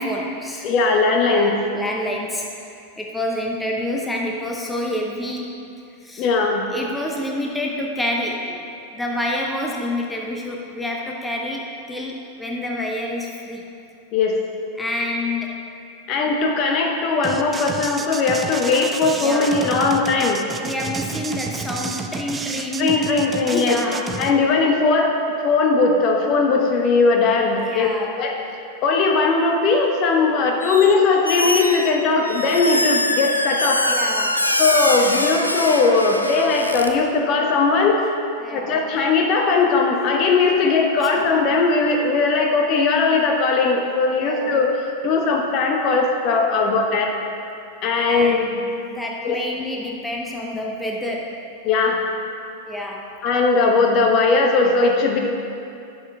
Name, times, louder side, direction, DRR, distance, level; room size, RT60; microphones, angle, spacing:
voice 1, 0.0-0.7 1.2-5.5 6.0-6.3 6.7-8.6 8.9-13.6 14.8-15.6 16.3-16.4 19.2-19.7 20.6-23.1 23.5-24.2 27.6-28.2 33.9-34.6 38.4-38.8 41.0-41.1 44.2-44.6 46.6-46.7 48.0-48.5 48.9-51.4 52.7-53.1, left 1 dB, 10° left, -1 dB, 0.9 m, -28 dB
voice 2, 0.6-1.5 6.2-6.6 14.1-14.4 16.1-20.4 22.8-23.8 24.2-25.2 25.4-27.9 28.1-28.4 28.8-33.8 34.6-38.0 38.5-44.7 45.0-47.1 47.8-48.6 49.2-49.4 51.6-52.0 53.2-55.2, left 4 dB, 35° left, 2 dB, 1.0 m, -19 dB
sound 1, 17.2-24.3, right 4 dB, 15° right, 0.4 m, -31 dB
Squeak, 30.6-31.0 31.2-36.9, left 1 dB, 85° left, 0.5 m, -23 dB
11.5 x 6.4 x 3.5 m, 2.6 s
figure-of-eight pair, 90°, 0 cm